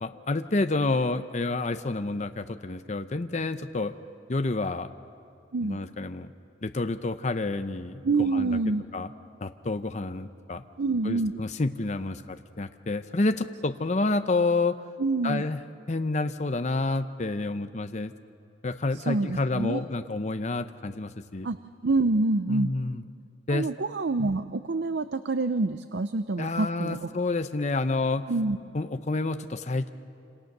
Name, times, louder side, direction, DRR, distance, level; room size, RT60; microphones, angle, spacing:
voice 1, 0.0-3.9 4.3-4.9 5.6-6.3 6.6-8.6 8.9-9.1 9.4-10.6 11.0-14.8 15.2-15.6 15.9-18.1 18.6-21.5 22.5-23.0 23.5-23.7 26.4-28.3 28.7-29.9, left 2 dB, 40° left, 9 dB, 0.7 m, -29 dB
voice 2, 8.0-8.8 10.8-11.3 15.0-15.4 19.0-19.8 21.4-21.6 21.8-22.7 23.5-27.1 28.3-28.6, right 3 dB, 75° right, 11 dB, 0.6 m, -26 dB
27.5 x 27.0 x 6.7 m, 2.5 s
head